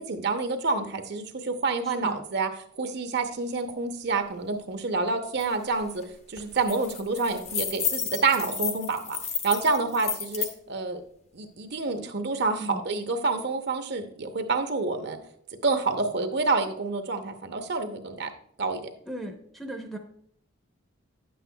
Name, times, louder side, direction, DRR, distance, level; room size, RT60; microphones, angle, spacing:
voice 1, 0.0-2.5 2.8-6.0 6.3-11.0 11.3-15.2 15.6-18.3 18.6-18.8, right 3 dB, 55° right, 7 dB, 0.7 m, -28 dB
voice 2, 1.8-2.2 12.6-12.8 19.1-20.0, right 1 dB, ahead, 1 dB, 0.6 m, -36 dB
sound 1, 5.4-5.5 5.8-6.0 6.4-10.5, left 7 dB, 30° left, 0.8 m, -32 dB
9.6 x 7.7 x 2.2 m, 0.68 s
head